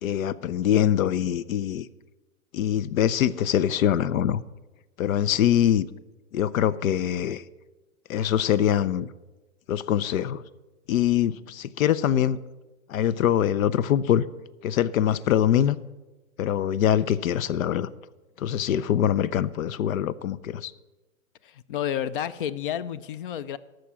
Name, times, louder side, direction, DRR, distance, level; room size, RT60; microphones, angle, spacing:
voice 1, 0.0-1.9 2.5-4.4 5.0-5.9 6.3-7.4 8.1-9.1 9.7-10.4 10.9-12.4 12.9-14.2 14.6-15.8 16.4-17.9 18.4-20.7, left 10 dB, 75° left, 18 dB, 0.7 m, -23 dB
voice 2, 21.4-23.6, left 10 dB, 40° left, 18 dB, 0.4 m, -30 dB
13.5 x 6.4 x 6.9 m, 1.1 s
hypercardioid pair, 155°, 41 cm